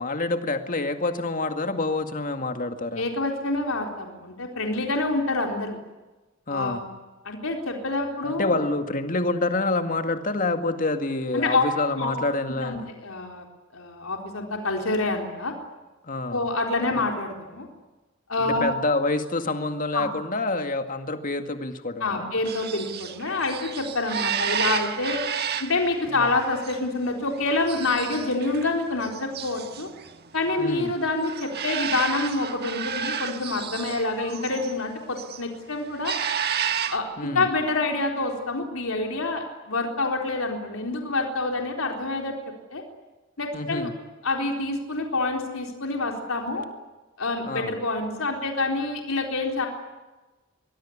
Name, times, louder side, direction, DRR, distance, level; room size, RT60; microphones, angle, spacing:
voice 1, 0.0-3.0 6.5-6.8 8.2-12.9 16.0-16.4 18.4-22.3 26.1-26.3 30.6-30.9 37.2-37.5 43.5-43.9 47.4-47.7, left 2 dB, 40° left, 7 dB, 2.1 m, -27 dB
voice 2, 3.0-5.8 6.5-6.8 7.2-8.6 11.3-11.6 12.0-12.2 12.6-13.4 13.7-15.5 16.3-17.7 18.3-18.7 19.9-20.1 22.0-25.2 25.6-29.9 30.3-36.1 36.9-42.3 42.7-42.8 43.4-43.9 44.2-46.6 47.2-49.7, left 2 dB, 85° left, 2 dB, 3.9 m, -27 dB
sound 1, 22.4-34.8 35.0-35.5 35.9-37.0, right 8 dB, 50° right, 1.5 m, -32 dB
24.5 x 21.5 x 10.0 m, 1.2 s
head